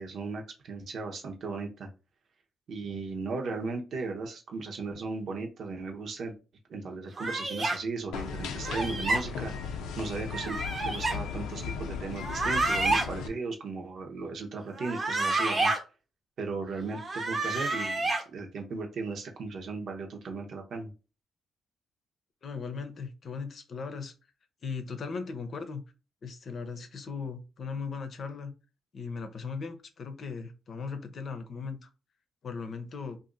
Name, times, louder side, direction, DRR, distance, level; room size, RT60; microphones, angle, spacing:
voice 1, 0.0-1.9 2.7-6.4 6.7-9.5 10.0-15.7 16.4-20.9, right 3 dB, 65° right, 1.0 m, -36 dB
sound 1, 7.2-7.8 8.6-9.2 10.3-11.2 12.2-13.1 14.7-15.8 16.9-18.2, right 2 dB, 35° right, 0.9 m, -29 dB
sound 2, 8.1-13.3, left 6 dB, 85° left, 0.5 m, -36 dB
voice 2, 22.4-24.1 24.6-25.9 26.2-28.5 28.9-31.9 32.4-33.2, left 5 dB, 50° left, 0.7 m, -38 dB
2.8 x 2.6 x 3.8 m
cardioid pair, 85°, 0 cm